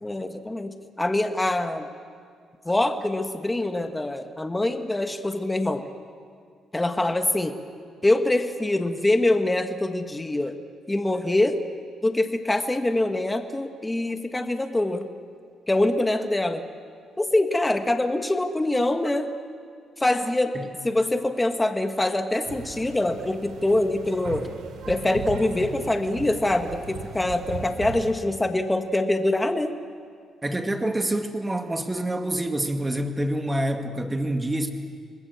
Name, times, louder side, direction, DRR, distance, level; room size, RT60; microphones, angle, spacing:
voice 1, 0.0-1.9 2.6-5.8 6.7-7.6 8.0-10.5 10.9-11.6 12.0-15.1 15.7-16.6 17.2-19.3 20.0-20.6 20.8-24.5 24.9-29.7, left 1 dB, 15° left, 6 dB, 1.5 m, -24 dB
sound 1, 22.5-28.2, right 6 dB, 75° right, 3.0 m, -38 dB
voice 2, 30.4-34.7, right 1 dB, 15° right, 5 dB, 2.1 m, -27 dB
27.0 x 20.5 x 7.0 m, 2.1 s
cardioid pair, 90°, 0 cm